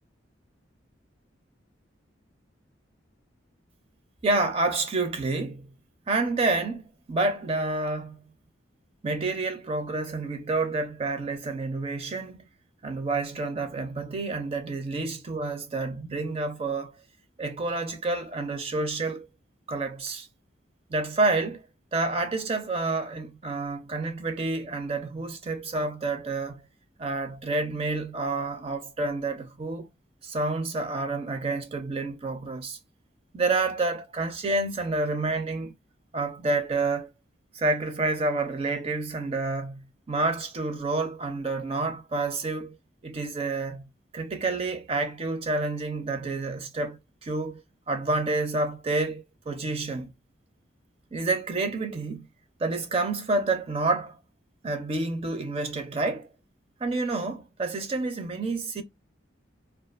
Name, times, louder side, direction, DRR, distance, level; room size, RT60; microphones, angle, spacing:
voice 1, 4.2-5.7 6.1-8.2 9.0-12.5 12.8-17.0 17.4-19.3 19.7-20.3 20.9-21.6 21.9-26.6 27.0-29.9 30.2-32.8 33.3-35.7 36.1-37.1 37.5-42.7 43.0-47.6 47.9-50.1 51.1-52.3 52.6-54.2 54.6-56.3 56.8-58.8, right 3 dB, 30° right, 0.4 m, -29 dB
2.4 x 2.3 x 2.4 m
head